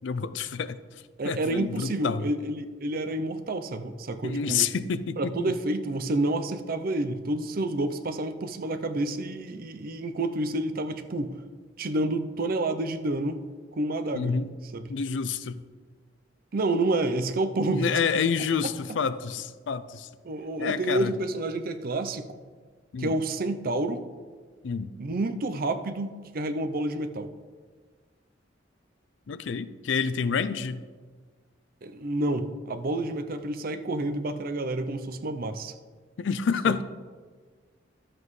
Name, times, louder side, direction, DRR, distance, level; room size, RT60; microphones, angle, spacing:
voice 1, 0.0-0.8 1.2-2.3 4.2-5.5 14.1-14.5 14.9-15.6 17.7-20.1 20.6-21.1 22.9-23.2 24.6-24.9 29.3-30.8 36.2-36.8, left 6 dB, 75° left, 14 dB, 0.4 m, -28 dB
voice 2, 1.2-4.7 5.2-11.3 11.8-13.4 13.8-14.3 14.7-14.8 16.5-18.0 18.9-19.0 20.2-22.4 23.0-24.0 25.0-27.3 31.8-35.7 36.7-36.8, right 2 dB, 50° right, 9 dB, 0.6 m, -29 dB
12.0 x 7.4 x 3.2 m, 1.5 s
head